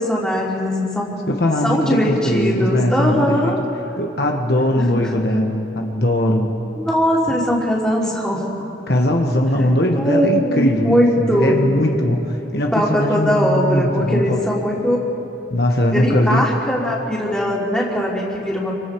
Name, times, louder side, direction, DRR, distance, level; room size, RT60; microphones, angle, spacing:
voice 1, 0.0-1.2 1.6-3.6 4.8-5.4 6.8-8.5 10.0-11.6 12.7-15.0 15.9-18.7, equal, 5° left, -4 dB, 3.2 m, -20 dB
voice 2, 1.3-3.5 4.0-6.5 8.9-14.4 15.5-16.4, left 1 dB, 60° left, 1 dB, 1.5 m, -20 dB
28.0 x 24.5 x 4.7 m, 2.8 s
head